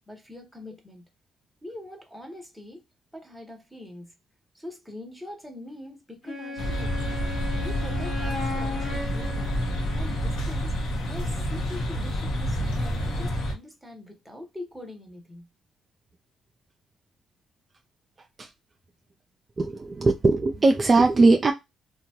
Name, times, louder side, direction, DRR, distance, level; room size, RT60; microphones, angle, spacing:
voice 1, 0.1-1.0 1.6-2.8 3.1-4.1 4.5-7.0 7.6-9.6 10.0-10.8 11.1-15.5, left 1 dB, ahead, 0.9 m, -42 dB
Wind instrument woodwind instrument, 6.2-10.6, left 3 dB, 50° left, 1.1 m, -36 dB
sound 1, 6.6-13.5, equal, 70° left, 0.8 m, -28 dB
voice 2, 19.6-21.5, right 3 dB, 30° right, 0.3 m, -20 dB
2.8 x 2.2 x 2.8 m
cardioid pair, 90°, 0 cm